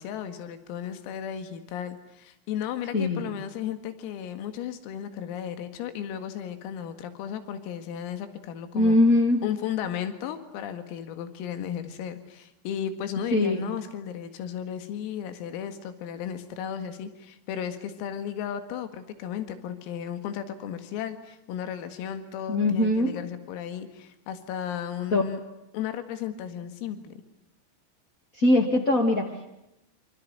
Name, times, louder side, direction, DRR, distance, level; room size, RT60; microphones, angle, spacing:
voice 1, 0.0-9.0 9.4-25.4 25.7-27.2, left 9 dB, 90° left, 9 dB, 4.6 m, -35 dB
voice 2, 2.9-3.3 8.7-9.4 13.3-13.6 22.5-23.1 25.1-25.2 28.3-29.5, left 2 dB, 35° left, 1 dB, 1.4 m, -22 dB
27.5 x 26.5 x 7.7 m, 0.87 s
omnidirectional pair, 5.9 m